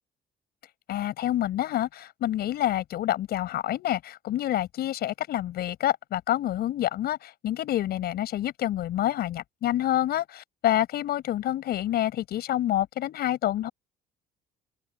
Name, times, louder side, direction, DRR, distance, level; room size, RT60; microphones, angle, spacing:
voice 1, 0.9-13.7, left 13 dB, 70° left, 7.8 m, -27 dB
open air
cardioid pair, 110°, 17 cm